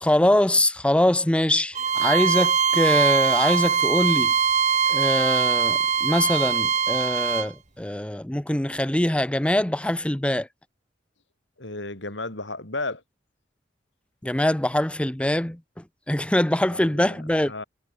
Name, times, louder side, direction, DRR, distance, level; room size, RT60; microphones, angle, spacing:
voice 1, 0.0-4.3 4.9-10.5 14.2-15.6 16.1-17.6, left 1 dB, 5° left, 0.6 m, -23 dB
Bowed string instrument, 1.7-7.5, right 7 dB, 40° right, 1.5 m, -22 dB
voice 2, 11.6-13.0 16.7-17.6, left 2 dB, 75° left, 5.3 m, -34 dB
head